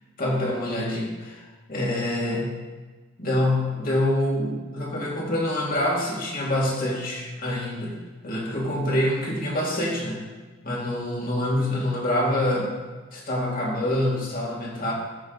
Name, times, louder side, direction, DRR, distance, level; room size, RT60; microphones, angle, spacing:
voice 1, 0.2-2.6 3.2-8.0 8.2-10.2 10.6-12.7 13.1-14.9, left 1 dB, 40° left, -3 dB, 2.2 m, -26 dB
12.0 x 8.1 x 3.9 m, 1.4 s
head